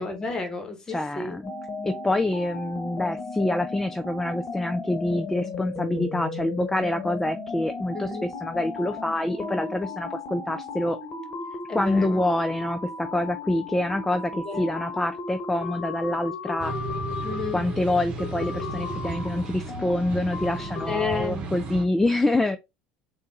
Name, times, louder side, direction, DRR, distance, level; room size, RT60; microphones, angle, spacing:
voice 1, 0.0-1.4 7.9-8.3 11.7-12.2 14.3-14.7 17.2-17.6 20.9-21.5, left 4 dB, 25° left, 1.4 m, -31 dB
voice 2, 0.9-1.5 1.8-11.0 11.7-16.7 17.5-22.6, left 1 dB, 10° left, 0.4 m, -26 dB
sound 1, 1.4-21.0, left 3 dB, 45° left, 1.2 m, -35 dB
sound 2, 16.6-21.8, right 4 dB, 50° right, 1.1 m, -35 dB
3.8 x 2.6 x 3.6 m
hypercardioid pair, 75°, 3 cm